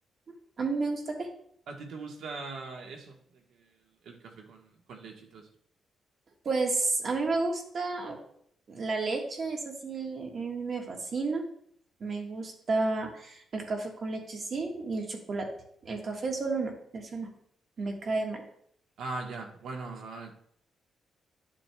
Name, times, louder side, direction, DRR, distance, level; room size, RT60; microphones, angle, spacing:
voice 1, 0.6-1.3 6.4-8.2 8.7-11.4 12.0-15.5 15.8-17.3 17.8-18.4, right 3 dB, 40° right, 2 dB, 1.4 m, -31 dB
voice 2, 1.7-3.7 4.0-5.5 19.0-20.4, right 3 dB, 75° right, 2 dB, 1.3 m, -41 dB
11.0 x 7.6 x 2.2 m, 0.67 s
cardioid pair, 145°, 0 cm